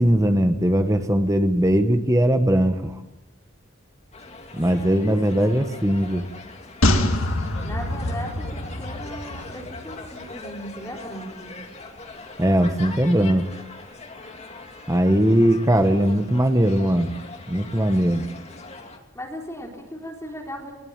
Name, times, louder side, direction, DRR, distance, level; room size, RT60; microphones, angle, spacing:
voice 1, 0.0-2.9 4.5-6.2 12.4-13.5 14.9-17.1 17.5-18.2, right 1 dB, 15° right, 7 dB, 1.2 m, -20 dB
sound 1, 4.1-19.0, left 3 dB, 30° left, 2.7 m, -41 dB
voice 2, 4.7-5.7 7.6-11.6 19.1-20.7, equal, 15° left, 0 dB, 4.0 m, -37 dB
sound 2, 6.8-10.3 10.6-10.7, left 1 dB, 75° left, 2.8 m, -25 dB
23.0 x 20.5 x 8.9 m, 0.96 s
head